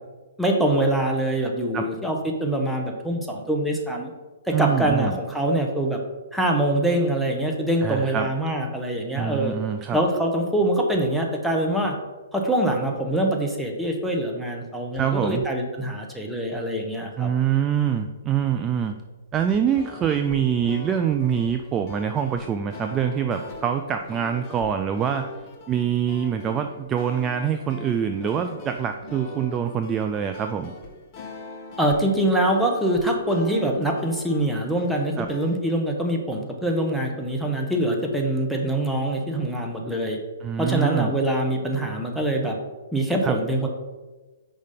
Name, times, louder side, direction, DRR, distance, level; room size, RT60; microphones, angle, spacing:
voice 1, 0.4-4.1 4.5-6.0 6.3-9.5 9.9-12.0 12.3-17.3 31.8-40.2 40.6-42.6 42.9-43.7, right 1 dB, ahead, 0 dB, 0.8 m, -24 dB
voice 2, 4.5-5.2 7.8-8.3 9.1-10.0 14.9-15.4 17.2-19.0 19.3-25.3 25.7-30.7 35.2-35.3 40.4-41.1 43.2-43.4, right 8 dB, 20° right, 6 dB, 0.3 m, -25 dB
sound 1, 19.6-35.6, left 3 dB, 30° left, 0.8 m, -42 dB
5.0 x 4.0 x 5.1 m, 1.2 s
figure-of-eight pair, 120°, 0 cm